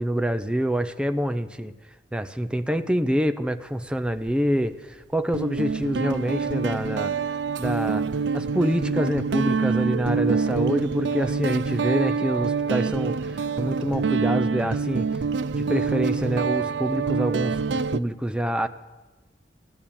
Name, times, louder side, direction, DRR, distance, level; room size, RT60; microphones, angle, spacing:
voice 1, 0.0-1.7 2.1-7.1 7.6-8.0 8.3-15.1 15.6-18.7, equal, 5° right, 10 dB, 0.6 m, -26 dB
Guitar, 4.1-4.3 5.3-18.0, right 5 dB, 80° right, 0.5 m, -26 dB
14.5 x 11.0 x 8.7 m, 1.2 s
head